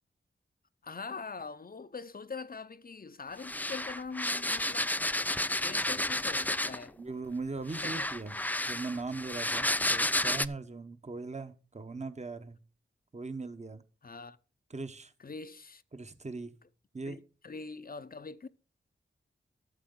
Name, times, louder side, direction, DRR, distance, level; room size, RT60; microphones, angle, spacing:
voice 1, 0.8-4.9 5.3-7.0 7.8-8.1 14.0-14.4 15.2-15.8 17.1-17.2 17.4-18.5, left 4 dB, 45° left, 0.7 m, -43 dB
sound 1, 3.4-6.9 7.7-10.5, left 1 dB, 10° left, 0.4 m, -31 dB
voice 2, 7.0-8.4 8.7-12.6 13.1-13.8 14.7-15.1 15.9-16.5 16.9-17.2, right 3 dB, 35° right, 1.1 m, -39 dB
13.0 x 7.6 x 3.8 m
wide cardioid pair, 95°, 21 cm